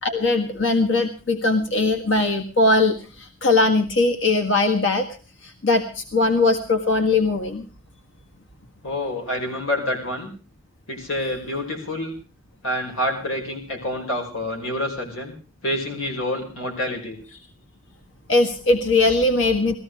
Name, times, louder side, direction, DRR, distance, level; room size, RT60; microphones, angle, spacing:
voice 1, 0.0-5.1 5.4-7.7 18.3-19.8, left 2 dB, 70° left, 4 dB, 1.7 m, -20 dB
voice 2, 8.8-10.3 10.9-12.1 12.6-15.3 15.6-17.2, left 1 dB, 90° left, 2 dB, 5.5 m, -27 dB
19.5 x 14.5 x 4.8 m, 0.37 s
head